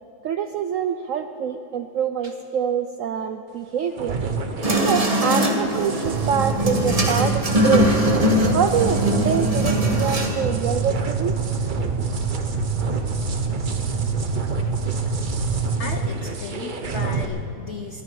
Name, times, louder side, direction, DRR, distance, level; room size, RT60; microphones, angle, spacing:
voice 1, 0.2-4.2 4.8-8.2 8.5-11.7 12.0-12.3, right 7 dB, 85° right, 8 dB, 0.7 m, -25 dB
sound 1, 4.0-17.3, right 4 dB, 45° right, 0.6 m, -26 dB
sound 2, 4.6-10.4, equal, 20° right, 1.3 m, -22 dB
voice 2, 15.8-18.0, left 5 dB, 85° left, 7 dB, 0.6 m, -35 dB
22.0 x 13.5 x 4.8 m, 3.0 s
omnidirectional pair, 2.0 m